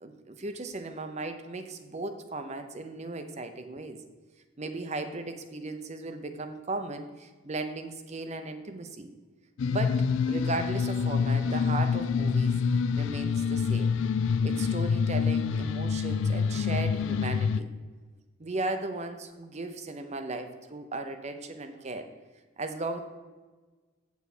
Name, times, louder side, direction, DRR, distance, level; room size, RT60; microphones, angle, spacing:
voice 1, 0.0-4.0 4.6-9.1 9.7-12.6 13.0-14.0 14.4-17.7 18.4-22.1 22.6-23.0, right 2 dB, 35° right, 8 dB, 0.6 m, -36 dB
sound 1, 9.6-17.6, left 5 dB, 60° left, 0.3 m, -27 dB
8.0 x 7.1 x 4.3 m, 1.3 s
head